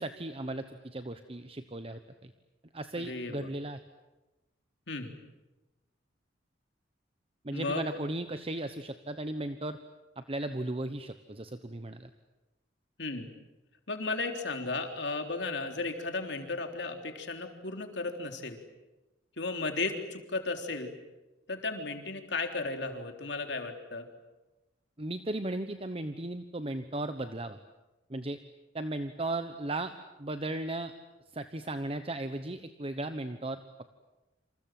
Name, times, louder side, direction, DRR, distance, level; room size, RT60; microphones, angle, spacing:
voice 1, 0.0-2.3 2.7-3.8 7.4-9.8 10.2-12.1 25.0-27.6 28.1-28.4 28.7-29.9 30.2-30.9 31.3-33.6, right 2 dB, 30° right, 9 dB, 1.1 m, -36 dB
voice 2, 3.0-3.4 4.9-5.1 7.5-7.8 13.0-13.3 13.9-18.6 19.4-20.9 21.5-24.1, left 3 dB, 65° left, 5 dB, 3.7 m, -34 dB
28.0 x 27.5 x 7.7 m, 1.1 s
head